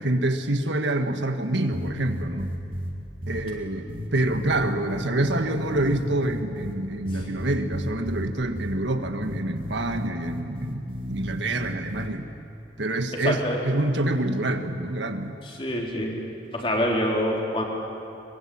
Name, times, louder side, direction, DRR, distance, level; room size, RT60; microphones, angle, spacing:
voice 1, 0.0-2.5 3.3-12.3 12.8-15.4, right 1 dB, 75° right, 6 dB, 1.6 m, -27 dB
sound 1, 1.7-2.9 3.2-3.4 3.9-6.7 7.1-8.2 8.6-8.7 9.2-12.1, equal, 50° right, 3.3 m, -33 dB
voice 2, 13.2-13.6 15.5-16.2 16.5-17.6, equal, 30° left, -1 dB, 3.9 m, -26 dB
23.5 x 22.5 x 8.7 m, 2.8 s
head